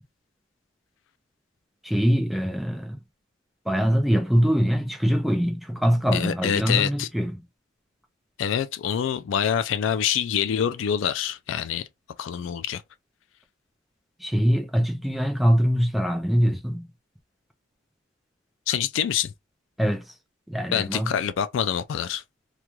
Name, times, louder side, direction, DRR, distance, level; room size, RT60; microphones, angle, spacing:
voice 1, 1.8-3.0 3.7-7.3 14.2-16.9 19.8-20.1 20.5-21.1, equal, ahead, 0.4 m, -23 dB
voice 2, 6.1-7.1 8.4-11.9 12.2-12.8 18.7-19.3 20.7-22.2, left 8 dB, 70° left, 0.3 m, -26 dB
2.4 x 2.2 x 2.9 m
head